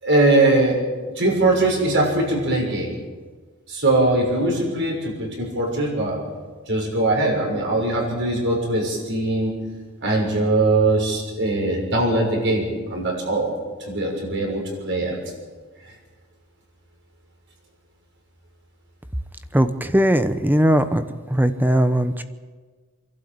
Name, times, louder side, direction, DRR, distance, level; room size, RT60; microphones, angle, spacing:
voice 1, 0.0-0.8 1.2-2.9 3.7-6.2 6.7-9.5 10.0-13.5 13.9-15.2, right 2 dB, 55° right, 0 dB, 6.4 m, -21 dB
voice 2, 19.5-21.0 21.3-22.2, right 1 dB, 10° right, 11 dB, 0.9 m, -19 dB
27.0 x 12.0 x 8.9 m, 1.4 s
head